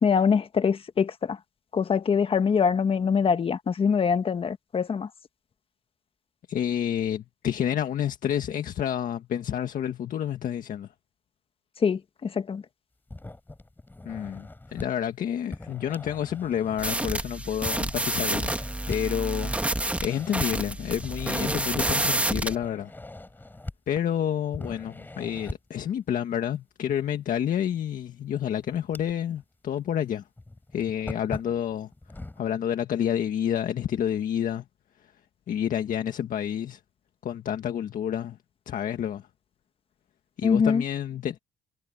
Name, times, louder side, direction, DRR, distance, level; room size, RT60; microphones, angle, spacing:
voice 1, 0.0-1.4 1.7-5.1 11.8-12.6 40.4-40.8, left 6 dB, 35° left, 1.4 m, -24 dB
voice 2, 6.5-10.9 14.1-18.6 18.9-22.9 23.9-30.3 30.7-31.9 32.4-34.6 35.0-35.1 35.5-36.8 37.2-38.4 38.7-39.3 40.4-41.4, left 9 dB, 55° left, 1.7 m, -29 dB
sound 1, 13.1-14.9 15.5-17.1 17.6-19.0 19.4-20.5 21.0-22.0 22.4-24.2 24.5-25.7 27.6-27.7 28.3-29.4 29.8-29.9 30.4-32.4, left 2 dB, 10° left, 5.7 m, -40 dB
sound 2, 16.8-22.6, right 1 dB, 10° right, 1.9 m, -28 dB
cardioid pair, 110°, 17 cm